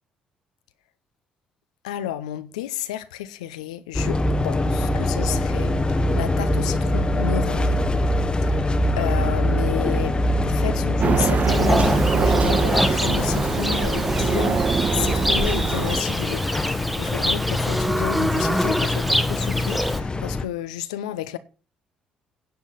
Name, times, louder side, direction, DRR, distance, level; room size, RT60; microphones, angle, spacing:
voice 1, 1.8-7.8 8.4-8.7 9.0-10.2 10.4-14.6 14.9-21.4, left 12 dB, 85° left, 0.7 m, -31 dB
sound 1, 3.9-20.4, left 1 dB, 25° left, 1.0 m, -24 dB
sound 2, 11.0-16.0, right 6 dB, 40° right, 0.5 m, -23 dB
Livestock farm animals working animals, 11.5-20.0, equal, ahead, 1.3 m, -26 dB
10.5 x 7.2 x 5.8 m
hypercardioid pair, 55°, 4 cm